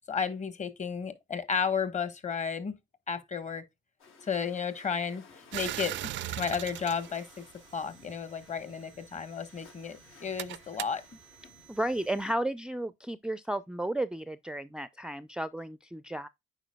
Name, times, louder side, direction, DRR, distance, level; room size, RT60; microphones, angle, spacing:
voice 1, 0.1-2.7 3.1-3.6 4.2-5.2 5.5-5.9 6.4-7.4 7.7-11.0, left 6 dB, 35° left, 1.3 m, -33 dB
sound 1, 4.0-12.1, left 4 dB, 85° left, 4.1 m, -57 dB
sound 2, 5.5-8.2 9.1-12.3, right 14 dB, 70° right, 0.4 m, -40 dB
voice 2, 11.7-16.3, right 1 dB, 5° right, 0.4 m, -33 dB
9.0 x 4.7 x 2.2 m
cardioid pair, 90°, 20 cm